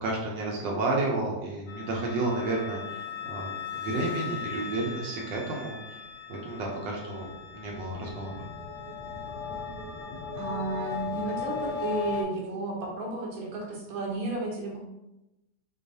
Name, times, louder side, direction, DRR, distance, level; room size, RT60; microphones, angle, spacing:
voice 1, 0.0-6.0 6.3-8.5, right 2 dB, 80° right, -2 dB, 1.3 m, -31 dB
sound 1, 1.7-12.2, left 6 dB, 70° left, 0.9 m, -37 dB
voice 2, 10.3-14.8, right 2 dB, 60° right, -1 dB, 1.2 m, -33 dB
3.9 x 3.1 x 2.6 m, 0.95 s
omnidirectional pair, 2.0 m